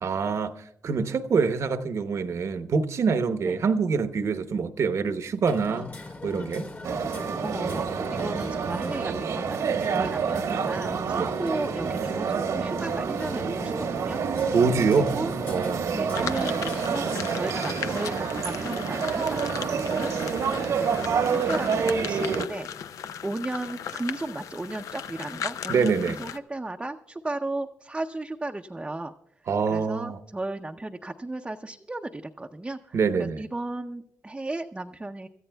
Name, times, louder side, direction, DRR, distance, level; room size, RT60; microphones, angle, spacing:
voice 1, 0.0-0.5 0.8-5.9 6.2-6.7 9.9-10.1 11.2-11.3 14.5-15.2 15.5-16.3 25.7-26.2 29.5-30.2 32.9-33.4, right 5 dB, 60° right, 0.9 m, -25 dB
Hammer, 5.4-17.1, left 3 dB, 40° left, 1.6 m, -41 dB
sound 1, 6.8-22.5, right 6 dB, 80° right, 1.2 m, -28 dB
voice 2, 7.4-14.2 15.0-15.3 15.9-20.3 20.8-21.1 21.5-22.7 23.2-29.1 29.7-35.3, right 2 dB, 15° right, 0.6 m, -35 dB
sound 2, 16.1-26.4, left 8 dB, 85° left, 0.5 m, -37 dB
27.0 x 14.0 x 2.3 m
cardioid pair, 100°, 6 cm